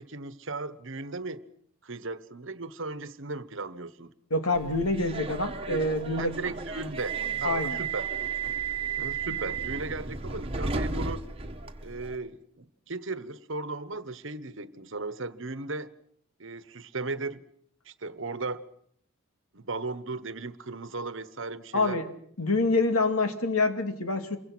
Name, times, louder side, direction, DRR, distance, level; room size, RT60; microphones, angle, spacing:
voice 1, 0.0-1.4 1.8-4.1 6.2-8.0 9.0-11.2 11.8-15.9 16.4-17.4 17.8-18.6 19.5-22.0, right 3 dB, 60° right, 14 dB, 1.2 m, -36 dB
voice 2, 4.3-6.4 7.4-7.8 21.7-22.1 22.4-24.4, left 2 dB, 80° left, 6 dB, 2.6 m, -26 dB
Subway metro underground, 4.5-12.2, right 5 dB, 25° right, 1.5 m, -33 dB
28.0 x 23.5 x 6.2 m, 0.66 s
head